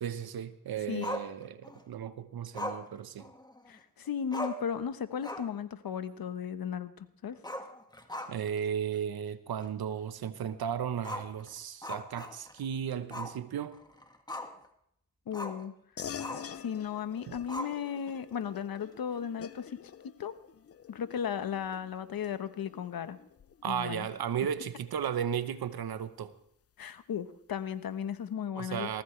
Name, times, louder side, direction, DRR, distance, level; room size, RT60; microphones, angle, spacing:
voice 1, 0.0-3.3 8.3-13.8 17.3-17.4 23.6-26.3 28.5-29.0, right 8 dB, 70° right, 1.1 m, -35 dB
Growling, 1.0-1.8 2.5-3.8 4.1-4.2 4.3-4.7 5.1-5.6 5.9-6.0 7.4-8.6 8.9-9.0 9.6-9.7 11.0-12.6 13.1-13.4 13.7-14.7 15.3-15.6 16.2-16.6 17.5-18.1, left 1 dB, 10° left, 1.8 m, -40 dB
voice 2, 3.7-7.4 15.3-15.7 16.5-19.8 20.0-20.3 20.9-23.2 23.7-24.1 26.8-28.9, left 8 dB, 65° left, 1.2 m, -35 dB
sound 1, 16.0-25.8, left 8 dB, 40° left, 0.6 m, -48 dB
19.5 x 16.0 x 3.3 m
cardioid pair, 60°, 38 cm